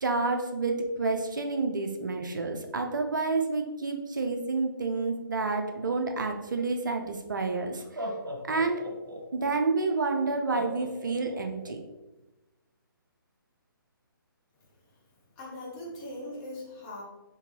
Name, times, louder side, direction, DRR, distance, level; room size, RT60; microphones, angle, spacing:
voice 1, 0.0-8.0 8.5-8.8 9.3-11.8, right 3 dB, 60° right, 4 dB, 0.4 m, -29 dB
Laughter, 7.1-7.2 7.8-9.5 10.5-11.7, equal, 75° right, 1.0 m, -37 dB
voice 2, 15.4-17.0, left 1 dB, 20° left, -5 dB, 1.0 m, -40 dB
3.6 x 2.9 x 2.8 m, 1.1 s
figure-of-eight pair, 140°, 12 cm